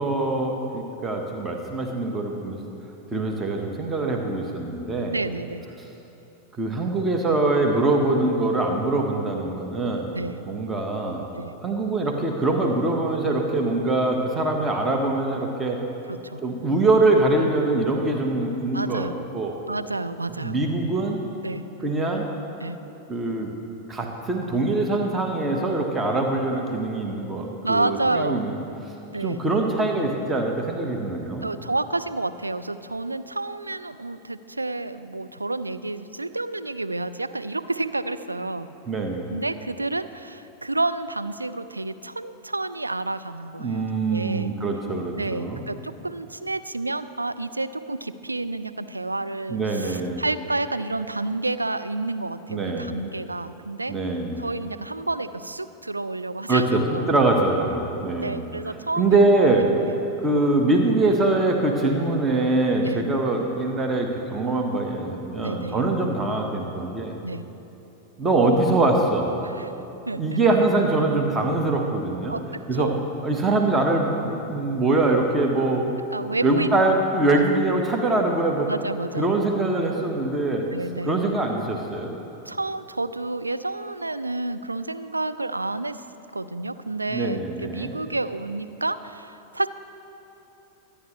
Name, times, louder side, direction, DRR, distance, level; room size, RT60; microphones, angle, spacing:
voice 1, 0.0-2.7 3.1-5.2 6.6-10.1 10.5-11.2 11.6-15.8 16.4-19.1 19.3-19.5 20.4-21.2 21.8-22.3 23.1-23.5 23.9-28.6 29.2-31.5 38.9-39.3 43.6-45.7 49.5-50.2 52.5-52.9 53.9-54.4 56.5-56.8 57.1-58.4 59.0-59.6 60.2-67.1 68.2-69.3 70.2-72.4 72.7-72.9 73.2-75.9 76.4-78.7 79.2-80.6 81.0-82.2 87.1-88.0, right 2 dB, 20° right, 2 dB, 1.3 m, -23 dB
voice 2, 5.1-5.7 10.1-10.4 11.4-11.5 16.1-16.4 18.7-19.2 19.7-20.6 21.4-21.6 22.6-22.8 27.6-28.4 29.1-29.4 31.4-38.7 39.3-43.8 44.1-44.5 45.2-53.9 54.4-57.1 58.2-59.4 62.8-63.0 65.4-65.8 67.2-67.4 69.6-69.7 70.1-70.4 72.3-73.0 76.1-76.7 77.3-77.4 78.7-79.3 80.7-81.1 82.5-86.0 86.3-89.7, right 2 dB, 80° right, 11 dB, 0.4 m, -30 dB
24.0 x 9.9 x 3.2 m, 3.0 s
figure-of-eight pair, 90°, 0 cm